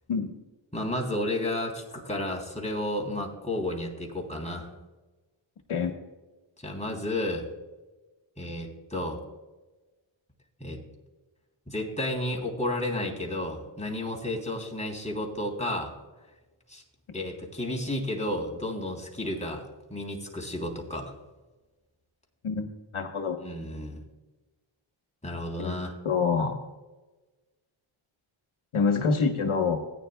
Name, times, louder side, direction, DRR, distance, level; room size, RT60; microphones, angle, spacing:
voice 1, 0.7-4.7 6.6-7.5 8.4-9.2 10.6-10.8 11.7-15.9 16.7-16.8 17.1-21.2 23.4-24.0 25.2-25.9, left 1 dB, 15° left, 0 dB, 3.2 m, -32 dB
voice 2, 22.9-23.4 25.6-25.8 26.0-26.6 28.7-29.8, left 5 dB, 80° left, 5 dB, 1.2 m, -26 dB
16.5 x 9.8 x 2.3 m, 1.2 s
cardioid pair, 50°, 49 cm